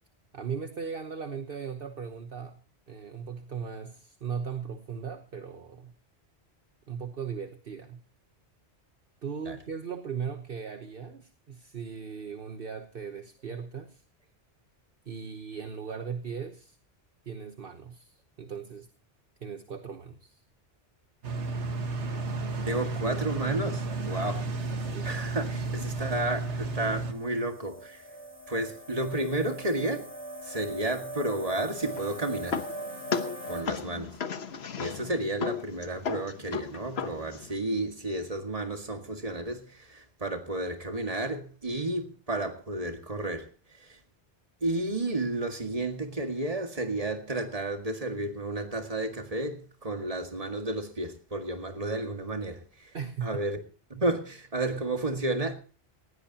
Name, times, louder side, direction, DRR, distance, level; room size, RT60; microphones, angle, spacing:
voice 1, 0.3-2.6 2.9-5.9 6.9-8.0 9.2-14.0 15.0-16.8 17.2-18.9 19.4-20.4 24.8-25.2 52.9-53.3, right 6 dB, 55° right, 1.3 m, -38 dB
sound 1, 21.2-27.1, right 3 dB, 85° right, 1.8 m, -32 dB
voice 2, 22.7-24.5 24.8-28.1 28.5-30.1 30.4-32.6 33.5-34.2 34.8-44.0 44.6-53.0 53.2-53.6 53.9-55.6, right 2 dB, 35° right, 2.0 m, -32 dB
sound 2, 27.1-33.6, right 1 dB, 15° right, 6.6 m, -41 dB
sound 3, 31.7-37.5, left 6 dB, 70° left, 1.3 m, -35 dB
19.0 x 16.5 x 2.9 m
omnidirectional pair, 1.1 m